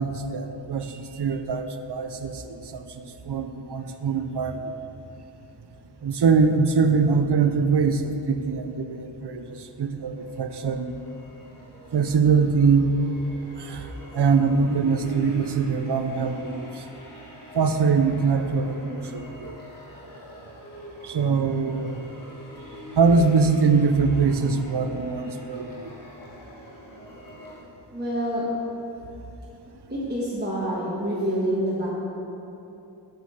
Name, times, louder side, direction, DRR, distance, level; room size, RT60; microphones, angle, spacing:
voice 1, 0.0-4.6 6.0-10.9 11.9-12.9 13.6-13.9 14.1-16.7 17.5-19.6 21.0-22.1 23.0-25.9, right 5 dB, 70° right, 8 dB, 0.5 m, -23 dB
sound 1, 10.1-27.6, right 2 dB, 50° left, 1.5 m, -42 dB
voice 2, 27.9-28.4 29.9-31.9, right 1 dB, 25° right, -8 dB, 1.3 m, -27 dB
6.7 x 6.1 x 4.2 m, 2.9 s
wide cardioid pair, 40°, 42 cm